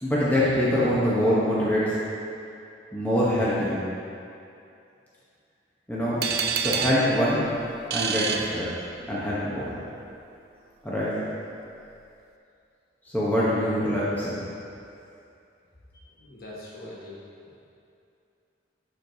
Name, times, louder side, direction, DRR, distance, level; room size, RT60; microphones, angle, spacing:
voice 1, 0.0-1.9 2.9-3.8 5.9-6.2 6.6-7.4 7.9-8.7 9.1-9.7 10.8-11.1 13.0-14.3, equal, 10° left, -9 dB, 0.9 m, -24 dB
sound 1, 6.2-9.2, right 6 dB, 55° right, 0.3 m, -29 dB
voice 2, 15.9-17.2, left 1 dB, 50° left, -6 dB, 1.3 m, -43 dB
11.5 x 4.5 x 2.7 m, 2.6 s
head